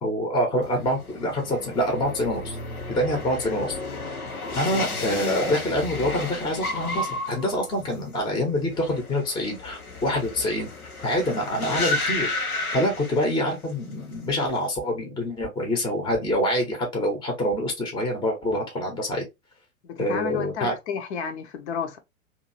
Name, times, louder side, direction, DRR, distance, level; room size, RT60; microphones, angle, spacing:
voice 1, 0.0-2.6 2.9-3.8 4.5-10.7 11.0-12.3 12.7-19.3 20.0-20.8, equal, 10° left, 0.8 m, -26 dB
sound 1, 0.6-13.7 14.0-14.6, left 2 dB, 90° left, 1.0 m, -32 dB
voice 2, 19.9-22.0, left 6 dB, 50° left, 0.9 m, -31 dB
2.8 x 2.6 x 2.6 m
figure-of-eight pair, 105°, 42 cm